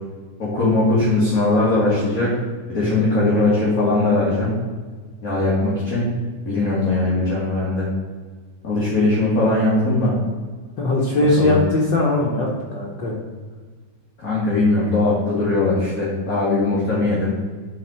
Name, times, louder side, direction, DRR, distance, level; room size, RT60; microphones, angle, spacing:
voice 1, 0.4-2.3 2.7-4.5 5.2-6.1 6.4-7.9 8.6-10.1 11.4-11.6 14.2-17.3, left 2 dB, 35° left, -7 dB, 1.7 m, -20 dB
voice 2, 10.8-13.1, left 2 dB, 85° left, -3 dB, 0.9 m, -20 dB
10.0 x 4.1 x 4.3 m, 1.5 s
omnidirectional pair, 3.6 m